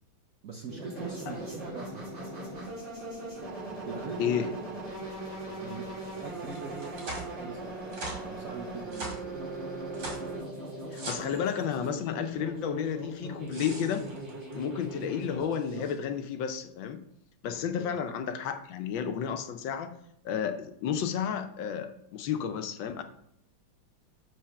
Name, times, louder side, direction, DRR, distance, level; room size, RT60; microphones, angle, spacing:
voice 1, 0.4-2.1 3.8-4.5 5.5-7.8 8.2-9.1 17.7-17.9, right 4 dB, 60° right, 2 dB, 0.9 m, -42 dB
sound 1, 0.7-15.9, right 1 dB, 35° right, 3.5 m, -39 dB
sound 2, 6.5-7.3 7.9-8.3 8.9-9.2 9.9-10.3 10.9-12.0 13.3-14.6, right 2 dB, 80° right, 3.1 m, -40 dB
voice 2, 10.9-14.1 14.5-17.0 17.4-19.9 20.2-23.0, left 8 dB, 70° left, 8 dB, 1.3 m, -32 dB
7.8 x 4.0 x 5.6 m, 0.72 s
omnidirectional pair, 2.3 m